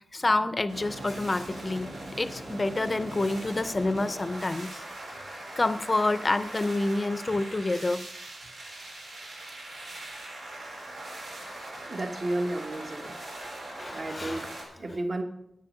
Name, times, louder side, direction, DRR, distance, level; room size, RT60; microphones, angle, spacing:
voice 1, 0.1-4.8 5.2-8.1 13.4-14.5, left 2 dB, 30° left, 14 dB, 0.6 m, -28 dB
sound 1, 0.7-14.6, right 1 dB, 85° right, 4.2 m, -41 dB
voice 2, 11.8-13.1 13.9-15.2, right 1 dB, 45° right, 5 dB, 1.4 m, -33 dB
9.6 x 8.4 x 6.4 m, 0.77 s
wide cardioid pair, 105°, 0 cm